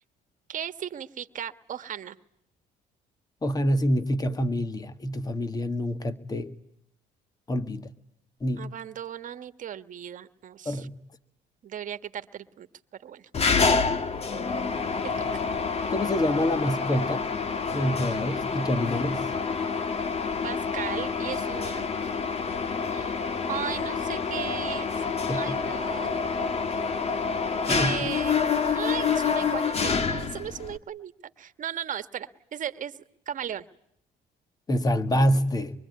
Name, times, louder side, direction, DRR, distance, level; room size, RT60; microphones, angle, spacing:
voice 1, 0.5-2.2 8.6-10.9 11.6-12.7 13.0-13.3 15.0-15.1 20.4-21.8 22.9-23.1 23.5-24.9 25.3-26.1 27.6-33.0 33.3-33.7, right 9 dB, 50° right, 1.5 m, -36 dB
voice 2, 3.4-6.5 7.5-7.9 8.4-8.7 10.7-10.9 15.9-17.3 17.7-19.3 25.3-25.5 27.7-27.9 34.7-35.7, equal, 20° left, 1.8 m, -26 dB
Mechanisms, 13.3-30.8, left 5 dB, 40° left, 1.6 m, -28 dB
25.0 x 24.0 x 9.6 m
cardioid pair, 110°, 17 cm